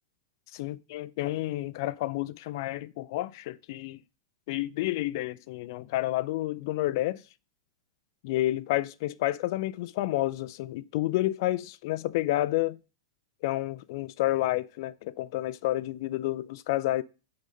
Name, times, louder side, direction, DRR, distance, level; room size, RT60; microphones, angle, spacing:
voice 1, 0.6-4.0 4.5-7.2 8.2-12.8 13.4-17.0, left 16 dB, 55° left, 0.4 m, -30 dB
9.6 x 3.9 x 5.1 m
hypercardioid pair, 135°, 2 cm